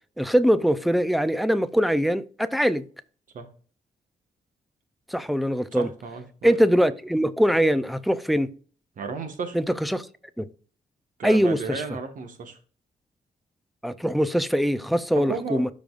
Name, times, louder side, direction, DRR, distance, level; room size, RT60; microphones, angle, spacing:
voice 1, 0.2-2.8 5.1-5.9 6.4-8.5 9.5-10.1 10.4-10.5 11.2-11.8 13.8-15.7, equal, ahead, 0.4 m, -22 dB
voice 2, 5.7-6.5 9.0-9.6 11.2-12.6 15.2-15.7, right 4 dB, 55° right, 1.5 m, -33 dB
13.0 x 5.2 x 2.5 m
wide cardioid pair, 175°, 16 cm